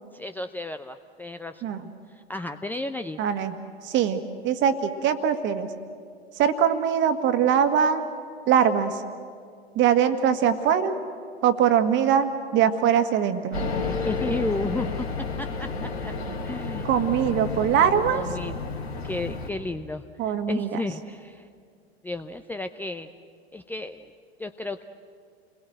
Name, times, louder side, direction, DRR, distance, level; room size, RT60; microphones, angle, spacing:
voice 1, 0.1-1.6 2.1-3.2 13.9-15.1 15.4-16.1 16.4-16.9 17.2-17.4 18.1-18.5 19.0-21.5 22.0-23.1 23.5-24.1 24.4-24.8, left 2 dB, 5° left, 8 dB, 0.6 m, -33 dB
voice 2, 3.2-3.6 3.8-5.7 6.4-8.0 8.5-9.0 9.8-10.9 11.4-13.6 16.8-18.2 20.2-20.7, right 8 dB, 35° right, 8 dB, 1.8 m, -22 dB
sound 1, 13.5-19.5, left 3 dB, 80° left, 3.5 m, -31 dB
29.5 x 21.0 x 7.8 m, 2.2 s
figure-of-eight pair, 85°, 32 cm